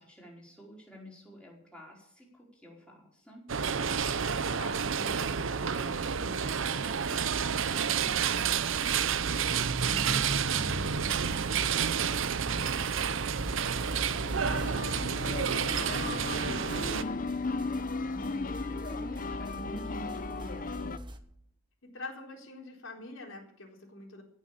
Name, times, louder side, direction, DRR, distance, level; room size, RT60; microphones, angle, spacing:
voice 1, 0.0-3.5 4.9-17.2 18.0-20.9, equal, 5° left, -3 dB, 4.6 m, -49 dB
sound 1, 3.5-17.0, right 7 dB, 75° right, 0.7 m, -30 dB
voice 2, 4.5-4.9 14.2-15.0 15.7-17.3 21.8-24.2, left 2 dB, 75° left, 1 dB, 4.0 m, -46 dB
sound 2, 8.4-21.2, equal, 25° right, 1.2 m, -43 dB
sound 3, 14.1-21.0, left 3 dB, 40° left, 0.7 m, -36 dB
16.5 x 6.7 x 8.4 m, 0.73 s
head